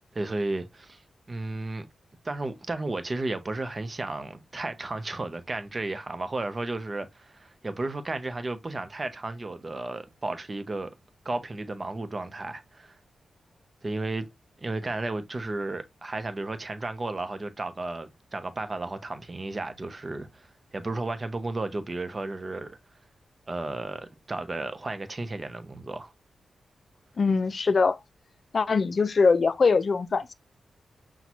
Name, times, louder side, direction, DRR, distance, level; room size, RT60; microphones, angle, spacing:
voice 1, 0.1-1.0 1.3-1.9 2.2-10.9 11.2-13.0 13.8-14.3 14.6-22.8 23.5-26.1, right 2 dB, 35° right, 0.7 m, -33 dB
voice 2, 27.2-28.0 28.5-30.3, left 4 dB, 50° left, 0.5 m, -22 dB
5.7 x 2.3 x 3.0 m
cardioid pair, 75°, 0 cm